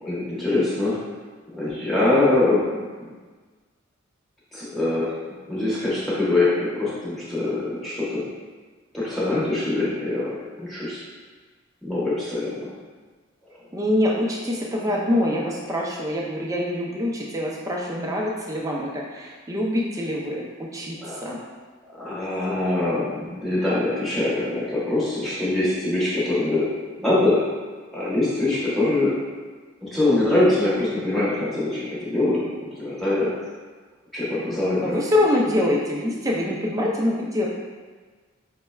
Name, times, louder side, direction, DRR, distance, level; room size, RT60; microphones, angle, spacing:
voice 1, 0.0-1.0 1.5-3.1 4.5-5.1 5.5-8.2 8.9-11.0 11.8-12.7 21.0-21.2 21.9-26.7 27.0-27.4 27.9-29.1 29.8-32.4 32.8-33.3 34.1-35.0, left 2 dB, ahead, -10 dB, 0.9 m, -23 dB
voice 2, 13.7-21.4 34.8-37.5, left 1 dB, 15° right, -3 dB, 0.4 m, -25 dB
5.5 x 2.1 x 2.3 m, 1.4 s
head